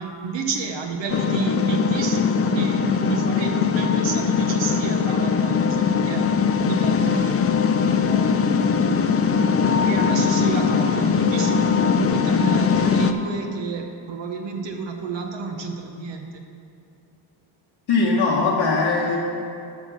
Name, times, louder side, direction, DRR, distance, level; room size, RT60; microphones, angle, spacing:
voice 1, 0.0-6.3 6.7-7.4 8.0-9.2 9.8-16.5, right 4 dB, 65° right, 3 dB, 1.0 m, -30 dB
sound 1, 1.1-13.1, left 6 dB, 30° left, 0.5 m, -20 dB
voice 2, 17.9-19.2, left 3 dB, 75° left, -6 dB, 1.3 m, -20 dB
9.6 x 5.6 x 6.3 m, 2.6 s
cardioid pair, 90°, 47 cm